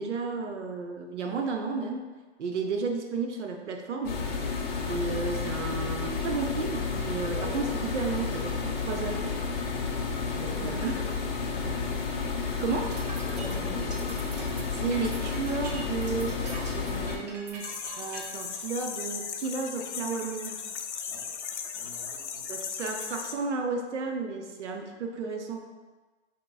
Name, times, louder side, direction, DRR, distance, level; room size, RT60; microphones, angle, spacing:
voice 1, 0.0-2.1 2.4-4.2 4.9-9.3 10.4-11.0 11.6-11.8 12.6-12.9 14.7-16.3 16.7-17.7 18.0-20.6 22.5-25.6, right 4 dB, 85° right, 3 dB, 0.7 m, -33 dB
sound 1, 4.0-17.2, left 5 dB, 45° left, 0.7 m, -31 dB
voice 2, 7.2-7.7 10.2-11.2 13.2-14.2 21.1-21.3 21.7-22.5, equal, ahead, -13 dB, 0.4 m, -43 dB
sound 2, 12.7-18.5, right 2 dB, 40° right, 0.6 m, -43 dB
sound 3, 17.6-23.3, left 7 dB, 90° left, 0.5 m, -37 dB
5.1 x 2.9 x 2.2 m, 1.3 s
hypercardioid pair, 150°, 34 cm